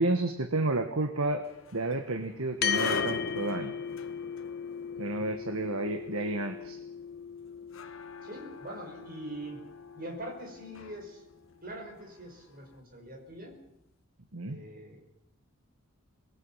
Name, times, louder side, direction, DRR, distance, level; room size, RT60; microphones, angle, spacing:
voice 1, 0.0-3.7 5.0-6.8 14.3-14.6, right 2 dB, 75° right, 7 dB, 1.5 m, -31 dB
sound 1, 1.4-12.6, left 4 dB, 65° left, 1.2 m, -42 dB
sound 2, 2.6-11.3, left 7 dB, 45° left, 0.8 m, -38 dB
voice 2, 5.0-5.3 8.2-9.6 9.9-11.2 11.6-13.6 14.4-15.1, right 1 dB, 40° right, 1 dB, 5.6 m, -43 dB
26.5 x 20.0 x 5.7 m, 0.83 s
head